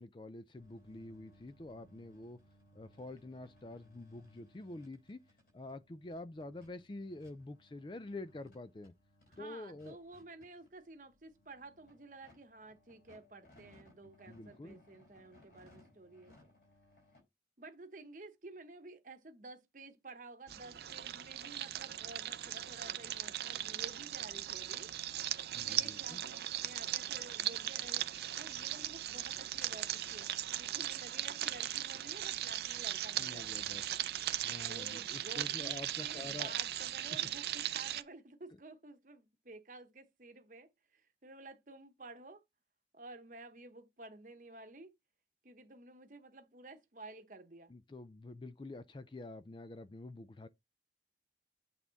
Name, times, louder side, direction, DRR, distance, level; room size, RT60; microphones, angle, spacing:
voice 1, 0.0-2.4 2.7-5.2 5.5-8.9 9.4-10.0 14.0-14.8 25.5-26.2 33.2-33.8 34.4-36.5 47.7-50.5, left 2 dB, 25° left, 0.4 m, -47 dB
sound 1, 0.5-17.2, left 1 dB, 55° left, 4.2 m, -65 dB
voice 2, 9.3-16.3 17.6-24.9 25.6-28.1 28.4-33.7 34.7-42.4 42.9-44.9 45.4-47.7, right 2 dB, 45° right, 0.9 m, -52 dB
sound 2, 20.5-38.0, right 12 dB, 60° right, 0.4 m, -38 dB
8.5 x 3.5 x 4.0 m
head